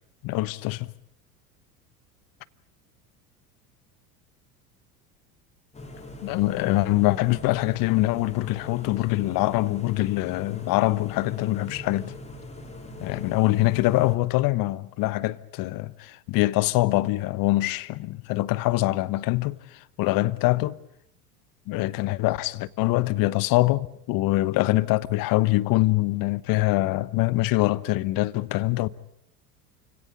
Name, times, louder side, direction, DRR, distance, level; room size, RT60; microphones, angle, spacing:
voice 1, 0.2-0.9 6.2-12.1 13.0-20.8 21.7-28.9, left 19 dB, 45° left, 1.1 m, -24 dB
sound 1, 5.7-14.2, left 2 dB, 15° left, 3.8 m, -41 dB
28.5 x 17.5 x 8.6 m
hypercardioid pair, 80°, 46 cm